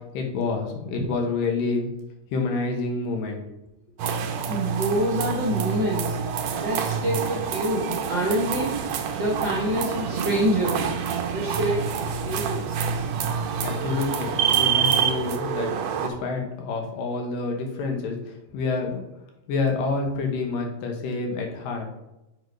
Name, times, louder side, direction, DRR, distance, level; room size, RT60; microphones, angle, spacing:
voice 1, 0.1-1.9 2.3-3.4 13.6-15.7 16.0-19.0 19.5-21.9, left 4 dB, 90° left, 2 dB, 2.9 m, -28 dB
sound 1, 4.0-16.1, right 7 dB, 75° right, 1.7 m, -27 dB
voice 2, 4.5-6.2 6.6-8.8 9.1-10.9 11.3-13.1, right 1 dB, 55° right, -5 dB, 1.2 m, -26 dB
7.3 x 4.7 x 5.2 m, 0.91 s
omnidirectional pair, 3.8 m